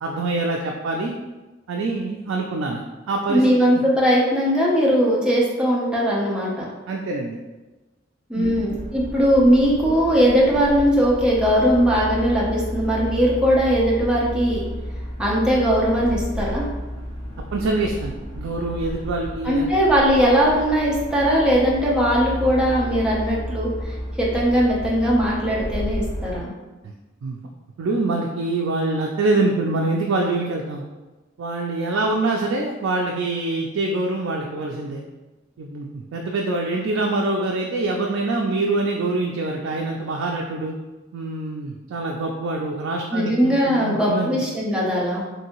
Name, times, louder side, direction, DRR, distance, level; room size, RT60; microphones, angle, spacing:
voice 1, 0.0-1.2 1.7-3.8 6.9-7.4 8.3-8.6 17.5-19.7 26.8-26.9 27.2-27.4 27.8-30.8 31.4-35.0 35.6-40.7 41.1-44.4, right 2 dB, 85° right, 0 dB, 0.3 m, -25 dB
voice 2, 3.3-6.7 8.3-14.6 15.2-16.7 19.4-26.5 43.1-45.2, equal, 5° right, -6 dB, 0.6 m, -19 dB
sound 1, 8.4-26.4, equal, 40° left, 0.9 m, -32 dB
3.2 x 2.7 x 2.9 m, 1.2 s
head